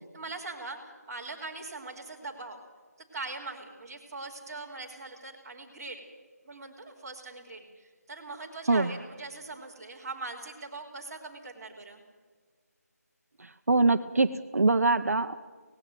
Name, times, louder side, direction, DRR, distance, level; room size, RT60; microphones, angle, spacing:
voice 1, 0.1-2.6 3.0-6.0 6.4-12.0, right 3 dB, 10° right, -6 dB, 2.7 m, -41 dB
voice 2, 13.7-15.4, right 3 dB, 60° right, 9 dB, 0.8 m, -23 dB
18.5 x 16.0 x 9.1 m, 1.5 s
figure-of-eight pair, 175°, 9 cm